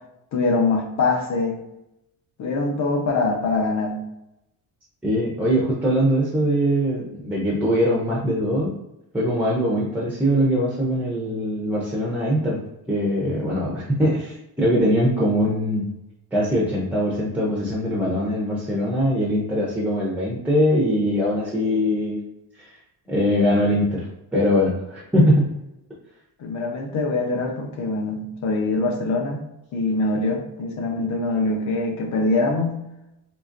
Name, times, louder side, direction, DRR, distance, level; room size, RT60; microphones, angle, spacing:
voice 1, 0.3-1.6 2.4-4.0 26.4-29.4 29.7-32.8, left 3 dB, 45° left, 2 dB, 0.7 m, -23 dB
voice 2, 5.0-8.7 9.1-12.6 12.9-15.8 16.3-22.2 22.6-22.7 23.1-24.1 24.3-25.5, equal, 5° right, -5 dB, 0.4 m, -22 dB
3.8 x 2.8 x 2.5 m, 0.89 s
cardioid pair, 180°, 39 cm